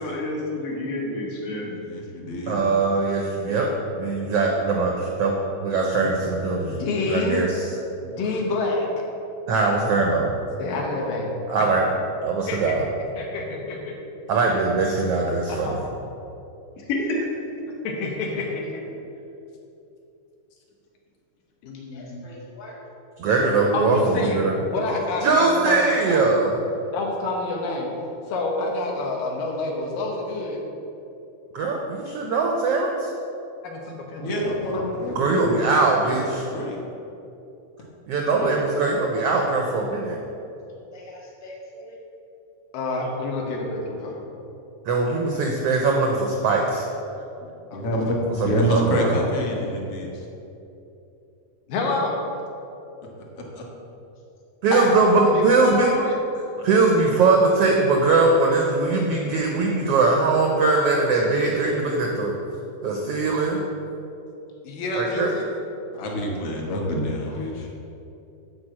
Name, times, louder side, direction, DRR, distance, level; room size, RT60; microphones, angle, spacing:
voice 1, 0.0-1.8 16.9-17.2, left 2 dB, 70° left, -3 dB, 3.0 m, -28 dB
voice 2, 1.8-2.6 34.2-36.8 47.4-48.2 48.5-50.3 53.2-53.7 65.9-67.7, equal, 55° left, -1 dB, 1.8 m, -27 dB
voice 3, 2.5-5.4 5.6-6.7 7.1-7.7 9.5-10.3 11.5-11.9 12.2-12.8 14.3-15.7 23.2-24.5 25.2-26.5 31.5-33.1 35.1-36.5 38.1-40.2 44.9-46.9 48.4-49.1 54.6-55.9 56.6-62.3 62.8-63.6 65.0-65.3, right 3 dB, 85° right, 0 dB, 1.3 m, -21 dB
voice 4, 6.7-7.5 8.0-8.9 10.6-11.5 12.5-12.7 13.1-13.9 15.7-15.8 17.8-18.8 21.6-22.2 23.7-24.4 24.7-26.2 26.9-27.9 28.3-30.6 33.6-34.9 38.4-38.5 42.7-44.2 47.7-47.9 51.7-52.2 54.7-56.2 64.6-65.4, left 2 dB, 90° left, 0 dB, 3.0 m, -28 dB
voice 5, 21.9-22.8 40.9-42.0 67.3-67.4, left 1 dB, 10° left, -4 dB, 0.9 m, -43 dB
9.4 x 4.8 x 7.5 m, 2.8 s
omnidirectional pair, 3.8 m